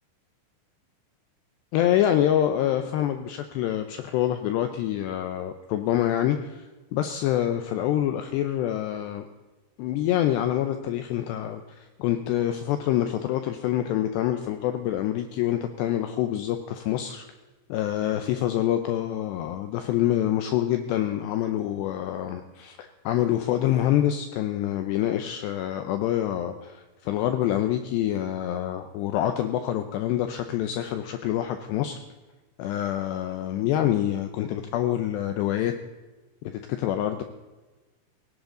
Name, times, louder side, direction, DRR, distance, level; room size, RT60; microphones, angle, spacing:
voice 1, 1.7-6.7 6.9-9.2 9.8-17.2 17.7-32.0 32.6-35.7 36.7-37.2, left 12 dB, 80° left, 8 dB, 2.5 m, -26 dB
18.0 x 15.5 x 3.9 m, 1.2 s
omnidirectional pair, 5.7 m